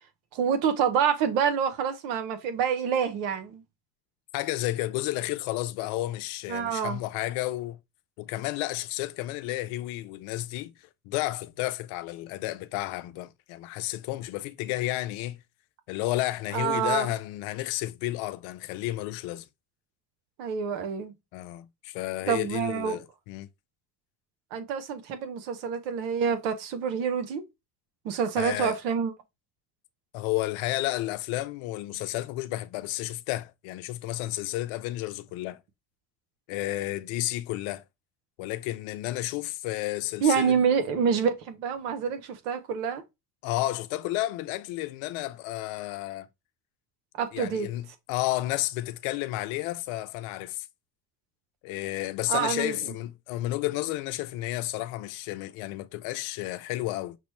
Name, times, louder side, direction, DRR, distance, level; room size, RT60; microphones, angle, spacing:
voice 1, 0.3-3.6 6.5-7.0 16.5-17.1 20.4-21.1 22.3-23.0 24.5-27.4 28.0-29.1 40.2-43.0 47.2-47.7 52.3-52.9, right 7 dB, 85° right, 0.9 m, -27 dB
voice 2, 4.3-7.8 8.2-10.7 11.1-15.4 15.9-19.4 21.3-23.5 28.4-28.7 30.1-35.6 36.5-37.8 38.4-40.6 43.4-46.3 47.3-50.7 51.6-57.2, left 16 dB, 75° left, 0.6 m, -32 dB
5.9 x 2.0 x 3.0 m
supercardioid pair, 70°, 48 cm